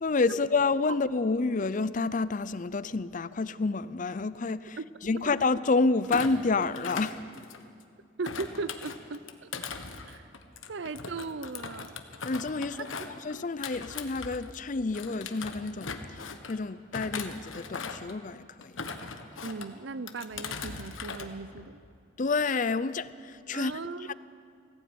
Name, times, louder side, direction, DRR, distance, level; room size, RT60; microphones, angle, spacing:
voice 1, 0.0-7.2 12.2-18.7 22.2-23.7 24.1-24.2, left 3 dB, 40° left, 0.5 m, -29 dB
Thump thud, 6.0-7.8 8.2-14.6 14.9-16.5 16.9-18.2 18.6-19.7 20.1-21.3 21.6-21.9, left 5 dB, 85° left, 1.4 m, -39 dB
voice 2, 8.2-9.5 10.1-10.2 10.7-12.0 12.8-13.1 19.4-21.8 23.5-24.1, right 3 dB, 65° right, 0.7 m, -38 dB
19.0 x 16.0 x 9.3 m
head